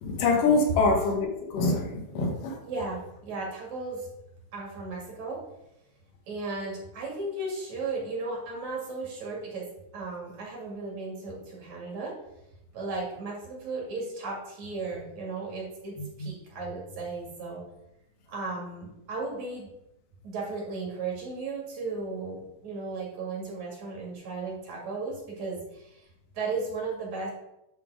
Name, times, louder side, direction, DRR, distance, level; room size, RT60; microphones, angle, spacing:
voice 1, 0.0-2.6 16.2-16.3, left 3 dB, 85° left, 1 dB, 2.8 m, -25 dB
voice 2, 2.6-4.1 4.5-5.4 6.3-9.7 9.9-12.1 12.7-17.6 18.3-19.7 20.2-26.1 26.3-27.3, right 3 dB, 60° right, -2 dB, 3.4 m, -35 dB
10.5 x 3.7 x 4.7 m, 0.85 s
omnidirectional pair, 3.7 m